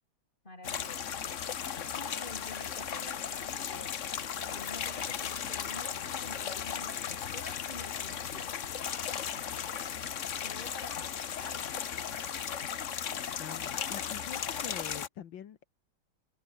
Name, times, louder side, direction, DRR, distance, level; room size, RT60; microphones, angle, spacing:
voice 1, 0.4-1.6 1.9-4.0 4.5-8.7 9.6-10.0 10.4-12.0, left 1 dB, 25° left, 6.0 m, -49 dB
sound 1, 0.6-15.1, left 8 dB, 50° left, 1.2 m, -36 dB
voice 2, 13.4-15.7, left 9 dB, 85° left, 2.1 m, -44 dB
omnidirectional pair, 2.0 m